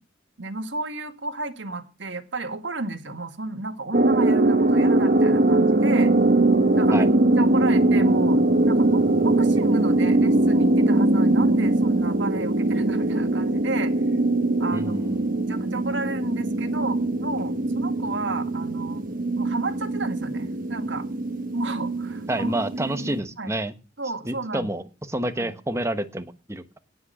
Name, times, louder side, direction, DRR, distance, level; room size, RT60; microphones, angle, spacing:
voice 1, 0.4-6.1 6.7-13.9 14.6-15.0 15.5-19.0 19.4-21.1 21.5-22.6 23.4-23.5 24.0-24.7 25.4-25.6, right 3 dB, 70° right, 8 dB, 2.0 m, -32 dB
sound 1, 3.9-23.2, right 2 dB, 45° right, 1.3 m, -21 dB
voice 2, 14.7-15.3 22.3-23.7 24.3-26.8, right 1 dB, 15° right, 10 dB, 1.2 m, -29 dB
18.0 x 6.2 x 7.1 m, 0.32 s
head